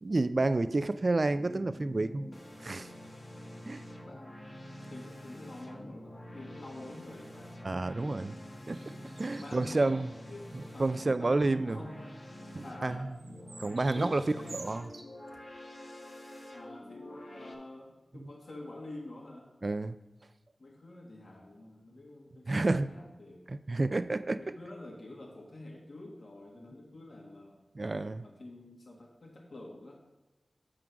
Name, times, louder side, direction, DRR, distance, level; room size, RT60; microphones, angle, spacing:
voice 1, 0.0-2.3 2.6-2.9 3.7-3.8 7.6-8.3 8.7-10.1 10.5-11.8 12.5-13.1 13.6-14.2 14.5-14.9 19.6-20.0 22.5-22.9 23.5-24.4 27.7-28.3, right 2 dB, 50° right, 13 dB, 0.3 m, -30 dB
sound 1, 1.3-17.6, equal, 45° left, 1.3 m, -47 dB
voice 2, 4.9-7.5 9.4-9.9 10.3-10.5 10.7-12.2 12.6-13.1 13.9-14.6 16.5-19.5 20.6-23.4 24.4-27.7 28.2-30.0, left 2 dB, 65° left, -1 dB, 1.5 m, -47 dB
sound 2, 8.7-10.1 10.5-10.7 11.0-11.6 13.1-15.0, right 3 dB, 75° right, 0.7 m, -51 dB
7.6 x 3.7 x 5.8 m, 1.1 s
wide cardioid pair, 70°, 0 cm